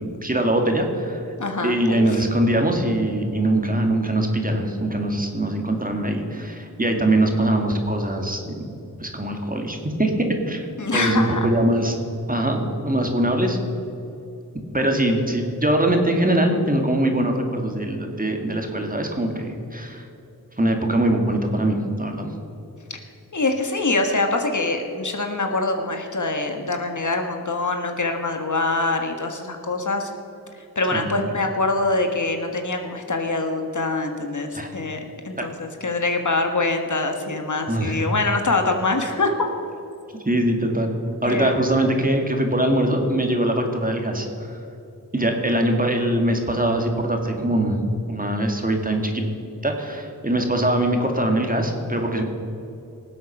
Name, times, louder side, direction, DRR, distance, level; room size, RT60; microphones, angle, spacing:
voice 1, 0.0-1.2 1.6-8.6 9.0-10.1 10.5-10.7 10.9-12.0 12.3-13.6 14.7-20.1 20.6-22.3 30.9-31.1 34.5-34.7 35.4-35.5 37.7-38.0 40.3-40.9 41.2-44.6 45.1-49.2 49.6-52.2, right 1 dB, 20° right, 3 dB, 2.2 m, -22 dB
voice 2, 1.4-2.2 10.8-11.5 22.9-23.0 23.3-30.1 30.6-39.5 41.2-41.6, left 2 dB, 50° left, 4 dB, 1.4 m, -24 dB
18.5 x 7.9 x 6.0 m, 2.9 s
cardioid pair, 55°, 38 cm